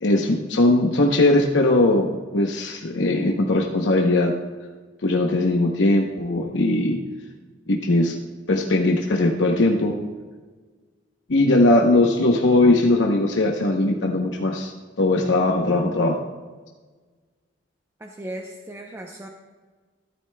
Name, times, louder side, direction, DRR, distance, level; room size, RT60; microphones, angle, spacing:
voice 1, 0.0-4.3 5.0-7.0 7.7-8.2 8.5-9.9 11.3-16.2, left 2 dB, 80° left, 1 dB, 0.8 m, -19 dB
voice 2, 18.0-19.3, right 1 dB, 15° right, 1 dB, 0.6 m, -36 dB
14.0 x 11.5 x 2.2 m, 1.4 s
head